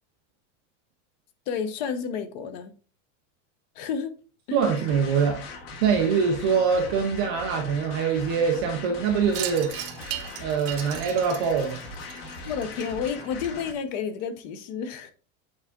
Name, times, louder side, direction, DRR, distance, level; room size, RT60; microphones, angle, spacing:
voice 1, 1.5-2.7 3.8-4.2 4.5-4.6 12.4-15.1, left 6 dB, 35° left, 0.7 m, -31 dB
voice 2, 4.5-5.4 5.8-9.7 10.4-11.8, right 6 dB, 20° right, 0.3 m, -24 dB
sound 1, 4.6-13.7, left 3 dB, 50° left, 1.6 m, -40 dB
Wind chime, 9.3-14.0, right 13 dB, 50° right, 0.7 m, -38 dB
8.4 x 3.5 x 3.6 m
supercardioid pair, 180°, 37 cm